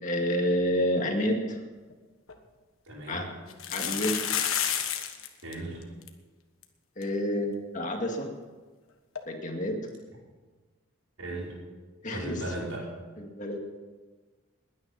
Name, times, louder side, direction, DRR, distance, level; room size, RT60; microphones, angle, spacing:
voice 1, 0.0-1.6 3.1-3.3 3.7-4.2 7.0-8.3 9.3-9.8 12.0-12.4 13.2-13.6, left 1 dB, 35° left, 2 dB, 2.1 m, -29 dB
sound 1, 1.9-2.0 2.3-2.4 3.5-5.3 5.5-5.6 5.8-6.1 6.6-6.7 7.0-7.1 9.1-9.2, left 9 dB, 80° left, 1.4 m, -30 dB
voice 2, 2.9-3.3 5.4-5.8 11.2-11.6 12.1-12.9, right 1 dB, 85° right, -4 dB, 5.6 m, -36 dB
21.0 x 9.7 x 5.8 m, 1.3 s
head